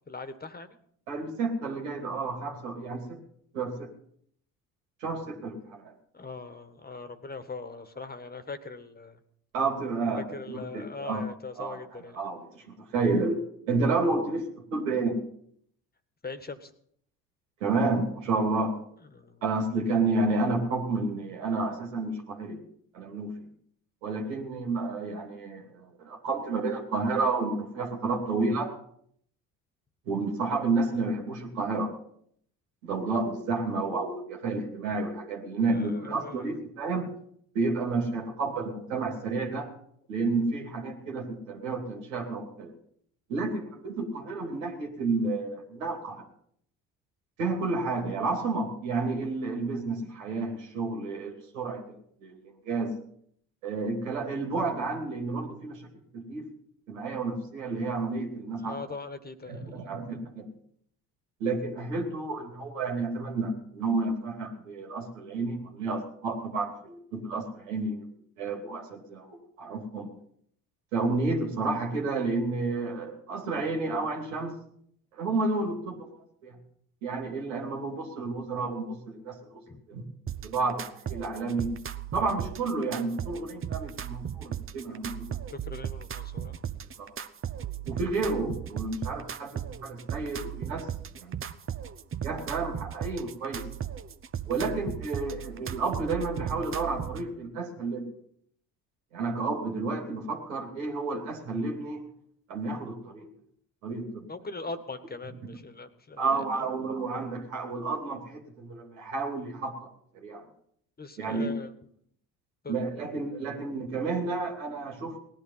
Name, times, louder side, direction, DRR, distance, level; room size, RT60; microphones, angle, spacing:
voice 1, 0.1-0.8 6.1-9.2 10.2-12.2 16.2-16.7 19.1-19.4 35.7-36.6 58.6-59.9 79.7-79.8 85.5-86.6 104.3-106.7 111.0-111.7 112.6-112.7, left 3 dB, 25° left, 11 dB, 1.6 m, -41 dB
voice 2, 1.1-3.2 3.5-3.9 5.0-5.9 9.5-11.2 11.6-13.4 13.7-14.4 14.7-15.2 17.6-18.8 19.4-22.6 22.9-23.3 24.0-28.7 30.0-31.9 32.8-37.1 37.5-39.7 40.1-42.7 43.3-46.3 47.4-52.9 53.6-56.4 56.9-58.8 59.5-60.5 61.4-68.1 68.4-70.1 70.9-74.6 75.1-76.1 76.4-76.6 77.0-79.6 79.9-80.1 80.4-81.7 82.1-85.4 87.0-87.1 87.9-90.9 91.2-91.4 92.2-93.6 94.5-98.1 99.1-102.0 102.5-103.3 103.8-104.3 105.4-105.5 106.2-110.4 111.2-111.5 112.7-115.2, right 3 dB, 85° right, 2 dB, 2.9 m, -31 dB
sound 1, 80.3-97.3, right 9 dB, 35° right, 0.9 m, -36 dB
18.0 x 11.5 x 5.7 m, 0.66 s
hypercardioid pair, 65°, 39 cm